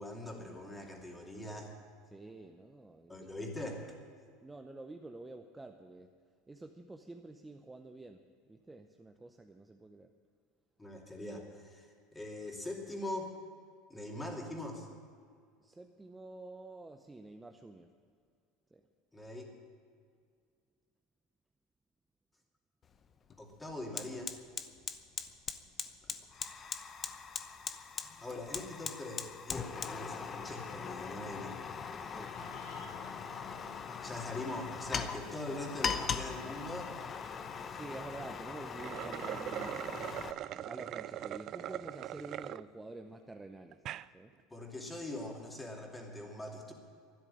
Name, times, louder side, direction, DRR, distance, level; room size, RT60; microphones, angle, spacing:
voice 1, 0.0-1.7 3.1-3.8 10.8-13.3 13.9-14.9 19.1-19.5 23.4-24.3 28.2-31.6 34.0-36.9 44.5-46.7, left 1 dB, 10° left, 0 dB, 2.7 m, -42 dB
voice 2, 2.1-3.2 4.4-6.1 6.5-8.2 8.5-10.1 15.6-17.9 18.7-18.8 32.0-32.4 37.7-43.9 44.1-44.3, right 2 dB, 10° right, 5 dB, 0.7 m, -49 dB
Fire, 22.8-23.0 23.3-40.3, left 6 dB, 30° left, 0.8 m, -40 dB
Wind instrument woodwind instrument, 32.1-37.0, left 6 dB, 65° left, 3.2 m, -53 dB
sound 1, 38.7-42.6 43.1-43.2 43.7-44.1, right 12 dB, 45° right, 0.3 m, -41 dB
12.5 x 10.5 x 10.0 m, 2.2 s
supercardioid pair, 115°, 0 cm